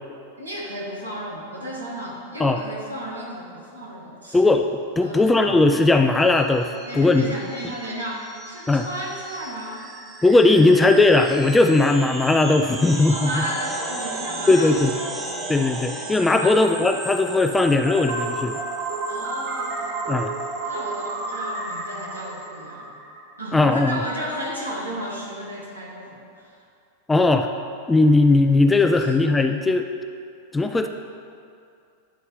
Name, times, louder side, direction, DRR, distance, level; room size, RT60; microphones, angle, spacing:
voice 1, 0.4-4.4 5.0-5.4 6.9-9.9 13.1-14.9 15.2-15.8 16.4-16.6 19.1-20.0 20.6-23.1 23.4-26.6 29.0-29.1, equal, 80° right, -3 dB, 1.3 m, -34 dB
voice 2, 4.3-7.2 8.7-8.9 10.2-13.4 14.5-14.9 15.5-18.6 20.1-20.3 23.5-24.0 27.1-27.5 27.9-29.8 30.5-30.9, left 2 dB, 10° left, 6 dB, 0.3 m, -18 dB
sound 1, 6.2-22.5, right 2 dB, 15° right, 0.9 m, -36 dB
sound 2, 17.9-23.7, right 3 dB, 50° right, 0.7 m, -31 dB
10.0 x 4.0 x 3.7 m, 2.4 s
figure-of-eight pair, 90°, 0 cm